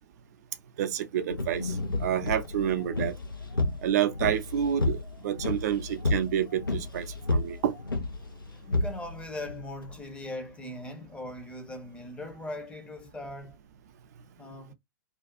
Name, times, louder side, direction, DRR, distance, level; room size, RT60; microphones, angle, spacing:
voice 1, 0.8-1.7 2.0-3.1 3.8-7.7, right 10 dB, 50° right, 0.5 m, -29 dB
sound 1, 1.3-10.0, left 2 dB, 85° left, 0.8 m, -31 dB
voice 2, 8.7-13.6 14.4-14.7, left 1 dB, 10° left, 0.7 m, -40 dB
2.5 x 2.3 x 2.6 m
figure-of-eight pair, 110°, 11 cm